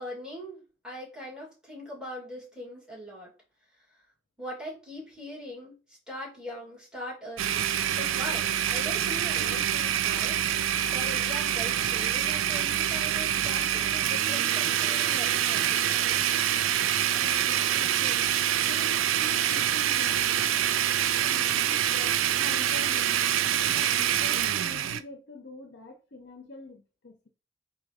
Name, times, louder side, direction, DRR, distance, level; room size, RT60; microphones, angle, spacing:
voice 1, 0.0-3.3 4.4-10.4 10.9-16.1 17.6-18.0, left 1 dB, 5° right, 2.2 m, -41 dB
Domestic sounds home sounds, 7.4-25.0, right 10 dB, 80° right, 0.4 m, -26 dB
voice 2, 17.2-18.3 18.6-20.4 21.1-23.3 23.7-27.3, left 2 dB, 55° left, 0.6 m, -45 dB
3.8 x 2.9 x 4.8 m
head